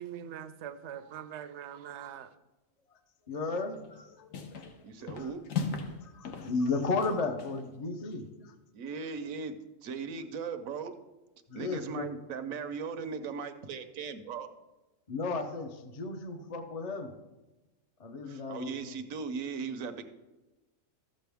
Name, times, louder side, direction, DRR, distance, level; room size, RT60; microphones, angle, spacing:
voice 1, 0.0-2.3, right 9 dB, 65° right, 0.8 m, -42 dB
voice 2, 3.3-4.3 4.6-4.7 5.2-5.3 6.0-8.5 11.5-12.1 15.1-17.1 18.0-19.0, left 3 dB, 40° left, 0.7 m, -34 dB
sound 1, 3.7-4.0 4.3-4.8 5.1-6.0 6.2-7.6, left 5 dB, 75° left, 1.3 m, -37 dB
voice 3, 4.8-5.4 8.7-10.9 11.5-14.5 18.3-20.1, right 5 dB, 85° right, 1.2 m, -38 dB
13.0 x 7.6 x 3.5 m
omnidirectional pair, 1.4 m